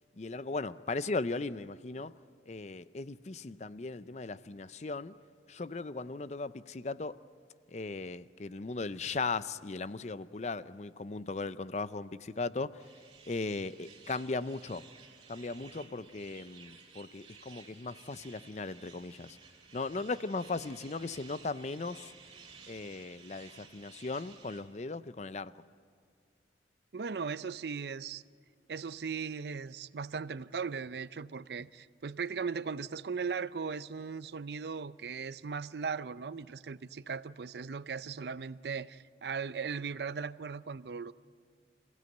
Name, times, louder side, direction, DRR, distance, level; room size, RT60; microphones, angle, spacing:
voice 1, 0.2-2.1 2.5-5.2 5.5-7.2 7.7-12.8 13.3-14.8 15.3-19.4 19.7-22.1 22.7-25.5, left 3 dB, 40° left, 15 dB, 0.5 m, -37 dB
sound 1, 12.8-24.6, right 5 dB, 25° right, 5.4 m, -55 dB
voice 2, 26.9-28.2 28.7-41.1, right 5 dB, 70° right, 16 dB, 0.5 m, -38 dB
27.5 x 15.5 x 7.9 m, 2.2 s
head